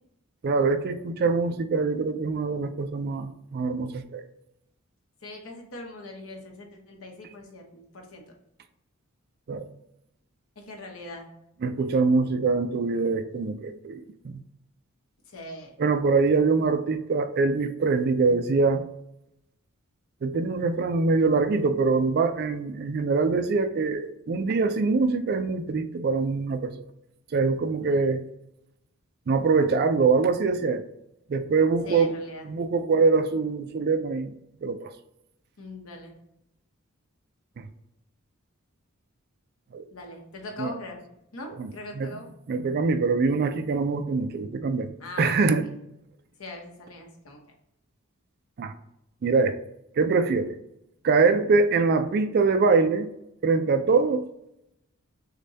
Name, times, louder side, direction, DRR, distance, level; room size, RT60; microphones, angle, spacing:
voice 1, 0.4-4.2 9.5-9.7 11.6-14.4 15.8-18.9 20.2-26.9 27.3-28.2 29.3-30.8 31.3-32.1 32.4-34.3 34.6-34.9 37.6-37.7 39.7-39.9 40.6-40.7 41.6-41.7 42.0-42.1 42.5-44.9 45.2-45.7 48.6-48.7 49.2-49.6 50.0-50.6 51.0-53.1 53.4-54.3, right 4 dB, 50° right, 10 dB, 0.3 m, -24 dB
voice 2, 5.2-8.2 10.6-11.3 15.3-15.7 31.8-32.5 35.6-36.1 39.9-41.0 41.3-42.3 45.0-45.5 46.4-47.4, left 2 dB, 75° left, 1 dB, 0.9 m, -41 dB
6.5 x 2.2 x 2.7 m, 0.82 s
head